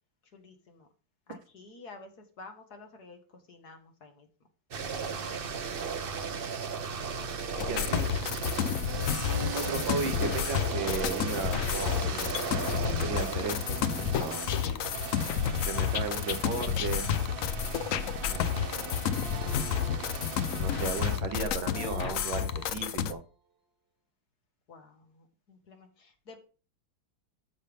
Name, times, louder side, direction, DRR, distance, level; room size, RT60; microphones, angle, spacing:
voice 1, 0.2-0.9 1.3-4.3 7.0-7.8 24.7-26.4, left 3 dB, 55° left, 4 dB, 1.9 m, -52 dB
sound 1, 4.7-21.2, right 5 dB, 55° right, 0.6 m, -37 dB
sound 2, 7.6-23.1, left 9 dB, 80° left, 0.7 m, -31 dB
voice 2, 7.7-8.1 9.5-12.4 12.7-14.4 15.5-17.0 18.3-19.1 20.5-23.2, right 5 dB, 75° right, 6 dB, 1.9 m, -36 dB
sound 3, 19.1-20.7 21.7-23.3, right 2 dB, 40° right, 1.1 m, -48 dB
13.5 x 5.4 x 3.4 m, 0.38 s
omnidirectional pair, 2.2 m